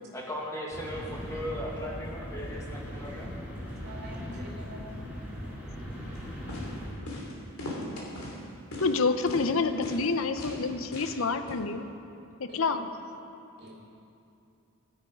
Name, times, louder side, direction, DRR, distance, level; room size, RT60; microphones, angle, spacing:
voice 1, 0.1-3.3 5.7-6.1, equal, 15° left, -3 dB, 1.7 m, -38 dB
sound 1, 0.7-6.9, equal, 5° right, 3.7 m, -39 dB
voice 2, 3.8-5.0 12.5-12.8 13.6-13.7, equal, 50° right, -3 dB, 2.6 m, -45 dB
sound 2, 6.1-6.2 6.5-6.7 7.1-7.3 7.6-8.4 8.7-9.0 9.3-9.5 9.8-10.1 10.4-10.6 10.9-11.2 11.5-11.6, left 2 dB, 85° left, 2.7 m, -38 dB
voice 3, 8.8-11.9 12.4-12.9, left 4 dB, 70° left, 9 dB, 0.7 m, -28 dB
14.0 x 10.0 x 5.0 m, 2.7 s
head